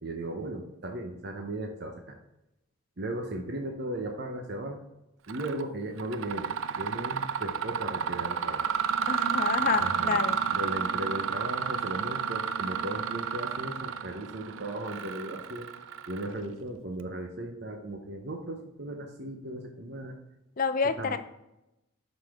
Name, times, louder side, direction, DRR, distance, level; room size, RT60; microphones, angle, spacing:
voice 1, 0.0-2.2 3.0-4.8 5.3-8.6 9.8-10.2 10.5-15.7 16.1-20.1 21.0-21.2, right 1 dB, 50° right, 2 dB, 0.9 m, -36 dB
Mechanisms, 5.3-5.6 6.0-16.5, right 7 dB, 70° right, 0.4 m, -31 dB
voice 2, 9.1-10.4 20.6-21.2, left 5 dB, 40° left, 10 dB, 0.5 m, -28 dB
11.5 x 4.1 x 3.6 m, 0.90 s
head